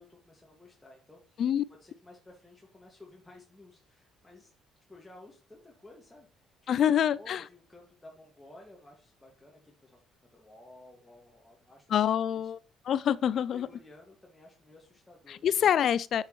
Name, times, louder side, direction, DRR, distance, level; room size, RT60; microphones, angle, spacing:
voice 1, 0.0-1.4 1.7-4.5 4.9-6.9 7.2-10.0 10.3-12.5 13.3-15.6, left 2 dB, 10° left, 2.1 m, -54 dB
voice 2, 6.7-7.4 11.9-12.6 12.9-13.7 15.3-16.2, left 9 dB, 60° left, 0.4 m, -26 dB
8.1 x 6.4 x 3.2 m
supercardioid pair, 70°, 0 cm